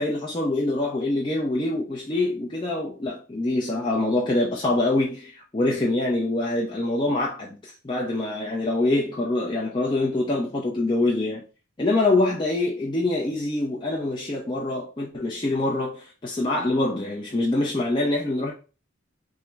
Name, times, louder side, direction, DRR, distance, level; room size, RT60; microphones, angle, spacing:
voice 1, 0.0-11.4 11.8-18.5, left 2 dB, 25° left, 0.5 m, -25 dB
3.6 x 2.0 x 4.3 m
head